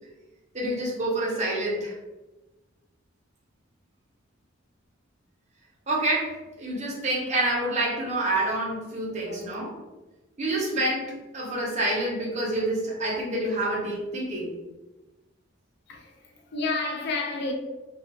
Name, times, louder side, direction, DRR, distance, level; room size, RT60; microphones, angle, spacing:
voice 1, 0.5-1.9 5.9-9.7 10.4-14.5, right 1 dB, 35° right, 0.8 m, -27 dB
voice 2, 9.0-9.5 13.1-13.2 15.9-17.5, left 3 dB, 55° left, 0.4 m, -32 dB
2.3 x 2.3 x 2.9 m
head